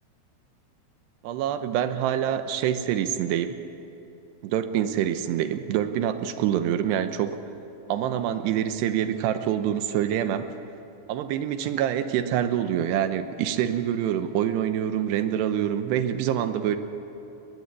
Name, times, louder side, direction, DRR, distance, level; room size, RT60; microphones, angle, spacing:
voice 1, 1.2-3.6 4.4-7.4 7.9-10.5 11.1-16.8, right 10 dB, 80° right, 10 dB, 3.0 m, -26 dB
20.5 x 20.0 x 8.2 m, 2.9 s
omnidirectional pair, 5.0 m